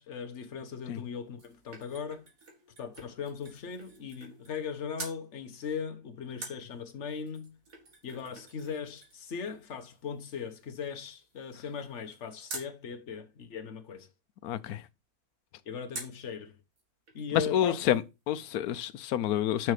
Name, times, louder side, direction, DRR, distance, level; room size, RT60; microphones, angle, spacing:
voice 1, 0.0-2.3 2.8-7.6 8.0-14.1 15.6-16.6 17.1-17.8, left 6 dB, 50° left, 1.3 m, -39 dB
sound 1, 1.0-4.7 5.0-5.2 6.4-12.8 15.9-16.3 16.8-16.9 17.1-18.1 18.3-18.4, right 3 dB, 65° right, 2.3 m, -48 dB
voice 2, 14.4-14.8 17.3-19.7, left 11 dB, 80° left, 1.1 m, -28 dB
6.2 x 5.8 x 4.8 m
omnidirectional pair, 1.6 m